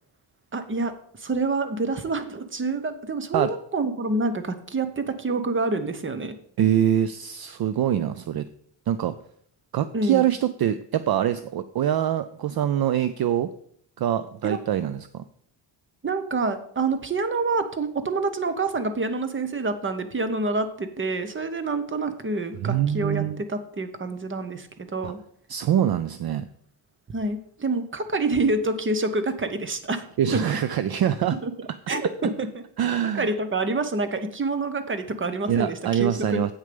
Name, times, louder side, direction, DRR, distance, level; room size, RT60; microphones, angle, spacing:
voice 1, 0.5-6.4 9.9-10.3 14.4-14.6 16.0-25.2 27.1-30.0 30.3-30.6 31.4-31.5 31.9-32.6 33.1-36.5, right 3 dB, 25° right, 10 dB, 0.8 m, -27 dB
voice 2, 6.6-8.5 8.9-9.1 9.7-13.5 14.0-15.2 22.6-23.4 25.0-25.1 25.5-26.4 30.2-31.4 32.8-33.3 35.5-36.5, right 10 dB, 55° right, 13 dB, 0.5 m, -24 dB
8.2 x 6.4 x 5.2 m, 0.64 s
wide cardioid pair, 145°, 47 cm